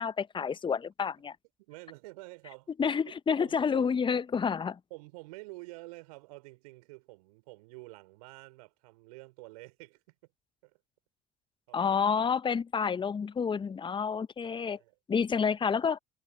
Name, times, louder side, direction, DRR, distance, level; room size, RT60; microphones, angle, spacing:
voice 1, 0.0-1.4 2.8-4.8 11.7-14.8 15.1-16.0, left 6 dB, 25° left, 0.9 m, -29 dB
voice 2, 1.6-2.7 3.4-3.9 4.9-10.2 10.6-10.8 11.7-12.0 14.4-15.0 15.3-15.6, right 24 dB, 70° right, 4.5 m, -49 dB
figure-of-eight pair, 60°, 20 cm